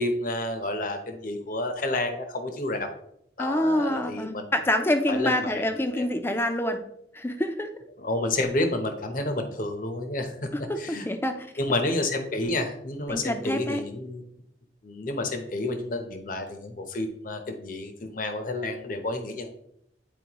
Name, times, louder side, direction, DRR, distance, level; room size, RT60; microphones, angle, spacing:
voice 1, 0.0-2.9 3.4-4.4 5.1-5.6 6.0-6.1 8.0-10.5 10.8-11.1 11.6-14.2 14.8-19.5, left 2 dB, 50° left, 6 dB, 0.9 m, -30 dB
voice 2, 3.4-6.8 7.1-7.7 10.5-11.5 13.1-13.8, left 1 dB, 15° left, 7 dB, 0.6 m, -26 dB
9.3 x 4.4 x 3.0 m, 0.74 s
head